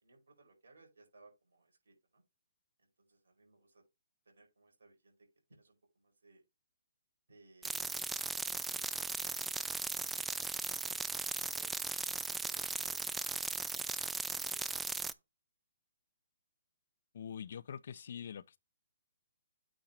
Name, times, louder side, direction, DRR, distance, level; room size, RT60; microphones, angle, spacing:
voice 1, 0.0-2.2 2.8-3.8 4.2-6.4 7.3-8.1 8.6-9.3 9.7-9.9 10.1-11.8 12.4-13.2 13.5-15.2, right 3 dB, 80° right, 4.8 m, -64 dB
sound 1, 7.6-15.1, right 3 dB, 5° right, 0.4 m, -37 dB
voice 2, 17.1-18.6, left 8 dB, 60° left, 0.6 m, -44 dB
8.8 x 3.8 x 4.4 m
hypercardioid pair, 135°, 0 cm